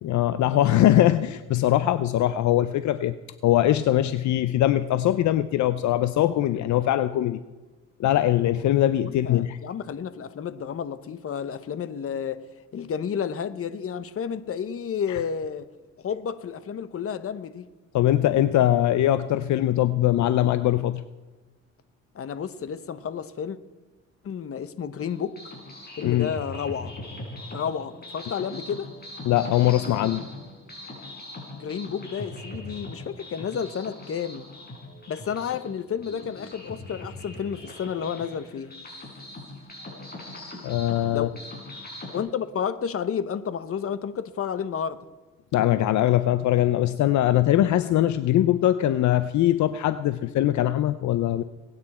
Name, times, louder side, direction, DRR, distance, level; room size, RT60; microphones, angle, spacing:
voice 1, 0.0-3.2 3.4-7.4 8.0-9.6 15.1-15.2 17.9-21.0 26.0-26.3 29.2-30.2 40.6-41.3 45.5-51.4, left 13 dB, 70° left, 13 dB, 0.6 m, -22 dB
voice 2, 9.0-12.4 12.7-15.7 16.0-17.7 22.1-23.6 24.2-25.4 26.0-26.9 27.5-28.9 31.5-34.4 35.1-38.7 41.1-41.3 42.1-45.1, left 7 dB, 50° left, 13 dB, 1.0 m, -31 dB
sound 1, 25.0-42.2, left 1 dB, 30° left, 5.4 m, -41 dB
22.0 x 9.5 x 4.3 m, 1.2 s
cardioid pair, 90°, 30 cm